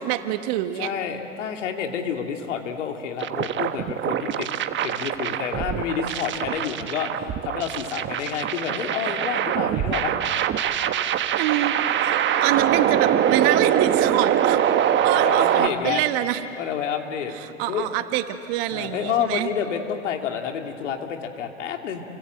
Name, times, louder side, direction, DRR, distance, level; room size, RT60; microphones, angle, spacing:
voice 1, 0.0-0.9 11.1-11.7 12.1-14.6 15.0-16.5 17.3-19.5, right 13 dB, 50° right, 8 dB, 1.7 m, -26 dB
voice 2, 0.8-4.5 4.8-10.1 15.1-16.0 16.6-17.3 17.7-17.9 18.7-22.0, left 7 dB, 70° left, 4 dB, 2.8 m, -29 dB
sound 1, 3.2-15.7, right 10 dB, 30° right, 1.3 m, -23 dB
29.5 x 25.5 x 8.0 m, 2.7 s
hypercardioid pair, 100°, 37 cm